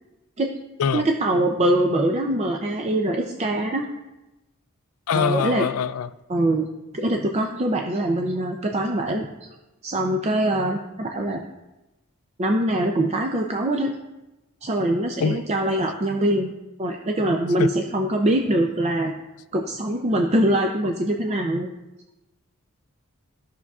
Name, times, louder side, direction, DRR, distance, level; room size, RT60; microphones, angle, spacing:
voice 1, 0.9-3.8 5.1-5.7 6.3-6.7 6.9-9.5 9.8-11.4 12.4-13.9 14.6-16.5 16.8-19.1 19.5-21.7, right 1 dB, 30° right, 2 dB, 0.5 m, -23 dB
voice 2, 5.1-6.1 15.2-15.4 17.6-17.7, left 6 dB, 75° left, 14 dB, 0.4 m, -23 dB
14.5 x 5.9 x 2.4 m, 1.0 s
head